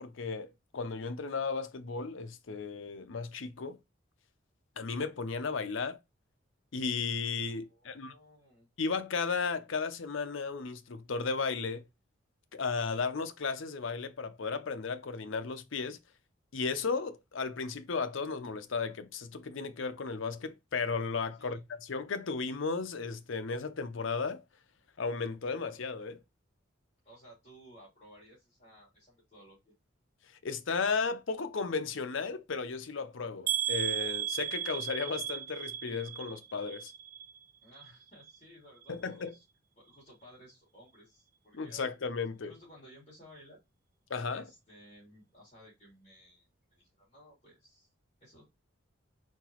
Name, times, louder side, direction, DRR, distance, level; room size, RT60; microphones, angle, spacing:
voice 1, 0.0-3.8 4.8-6.0 6.7-8.1 8.8-11.8 12.5-16.0 16.5-24.4 25.0-26.2 30.4-36.9 38.9-39.3 41.5-42.5 44.1-44.4, left 4 dB, 70° left, 0.6 m, -34 dB
voice 2, 7.6-8.7 21.3-21.6 27.0-29.7 37.6-39.4 39.8-41.9 42.4-43.6 44.3-47.9 48.2-48.4, equal, 30° left, 2.6 m, -57 dB
sound 1, 33.5-37.4 37.7-38.4 38.8-38.9 39.3-39.4, right 10 dB, 40° right, 0.3 m, -35 dB
4.3 x 4.0 x 3.0 m
head